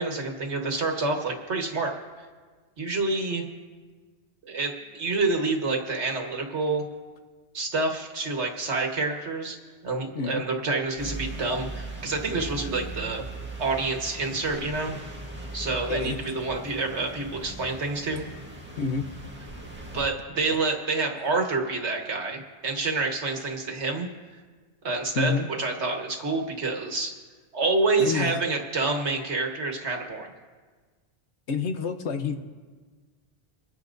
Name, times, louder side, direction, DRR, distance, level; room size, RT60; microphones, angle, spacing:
voice 1, 0.0-1.9 2.8-3.4 4.5-6.8 7.5-9.6 9.8-13.2 13.6-14.9 15.5-18.2 19.9-24.1 24.8-25.3 25.6-27.1 27.5-30.3, right 3 dB, 90° right, 2 dB, 1.8 m, -28 dB
voice 2, 10.1-10.4 15.9-16.2 18.8-19.1 25.1-25.5 28.0-28.4 31.5-32.4, left 5 dB, 85° left, 7 dB, 1.2 m, -28 dB
sound 1, 11.0-20.1, right 2 dB, 10° right, 1.6 m, -39 dB
29.5 x 9.9 x 2.6 m, 1.4 s
omnidirectional pair, 1.1 m